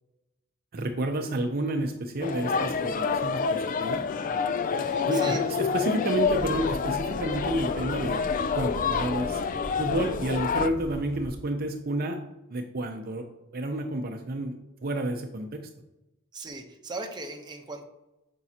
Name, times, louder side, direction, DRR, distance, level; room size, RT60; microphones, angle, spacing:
voice 1, 0.7-4.1 4.7-8.2 8.5-9.4 9.8-12.2 12.5-13.2 13.5-15.6, right 1 dB, 45° right, 4 dB, 0.6 m, -30 dB
sound 1, 2.2-10.7, left 5 dB, 40° left, 0.3 m, -28 dB
voice 2, 4.8-5.4 16.3-17.8, right 3 dB, 20° right, 3 dB, 0.8 m, -38 dB
sound 2, 6.2-11.3, equal, 80° left, 1.6 m, -40 dB
9.0 x 5.4 x 2.8 m, 0.96 s
head